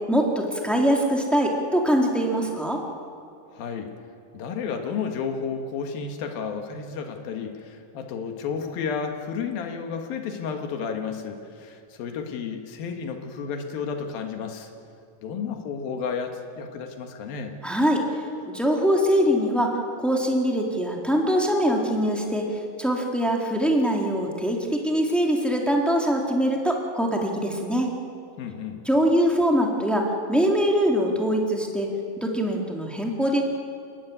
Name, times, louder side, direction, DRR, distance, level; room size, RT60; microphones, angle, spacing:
voice 1, 0.0-2.8 17.6-18.1 18.4-22.4 22.8-27.9 28.8-31.9 32.2-33.4, equal, ahead, 0 dB, 1.3 m, -23 dB
voice 2, 3.5-3.9 4.3-14.7 15.2-17.5 28.4-28.8, left 6 dB, 90° left, 4 dB, 3.5 m, -32 dB
29.0 x 13.0 x 9.6 m, 2.5 s
omnidirectional pair, 4.0 m